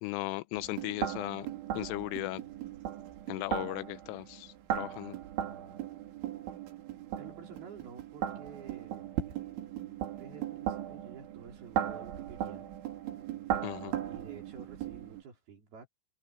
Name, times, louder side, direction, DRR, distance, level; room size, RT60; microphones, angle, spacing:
voice 1, 0.0-2.4 3.3-5.2 13.6-14.0, left 19 dB, 85° left, 3.2 m, -37 dB
sound 1, 0.5-15.2, right 10 dB, 70° right, 4.4 m, -38 dB
voice 2, 7.2-9.1 10.1-12.7 14.1-15.9, right 7 dB, 55° right, 5.6 m, -50 dB
omnidirectional pair, 5.7 m